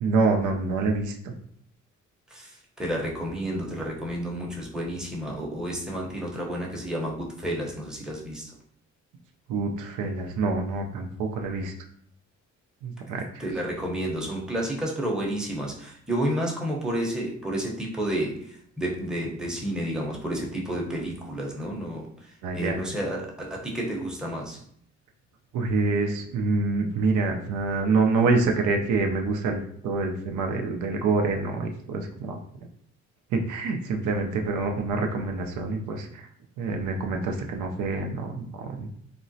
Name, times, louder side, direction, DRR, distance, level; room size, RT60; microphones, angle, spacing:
voice 1, 0.0-1.3 9.5-11.7 12.8-13.3 22.4-22.8 25.5-32.4 33.3-36.2 36.6-38.9, right 3 dB, 80° right, 3 dB, 0.5 m, -26 dB
voice 2, 2.3-8.5 13.4-24.6, right 1 dB, ahead, -2 dB, 0.7 m, -31 dB
3.6 x 2.0 x 2.6 m, 0.64 s
cardioid pair, 90°, 30 cm